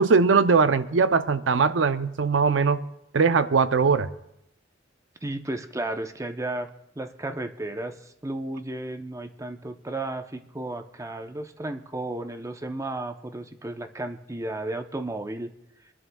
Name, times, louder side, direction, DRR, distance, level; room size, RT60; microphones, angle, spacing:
voice 1, 0.0-2.8 3.1-4.1, right 5 dB, 80° right, 12 dB, 0.6 m, -20 dB
voice 2, 5.2-6.7 7.0-15.5, right 2 dB, 15° right, 7 dB, 0.7 m, -33 dB
27.0 x 11.0 x 2.3 m, 0.78 s
head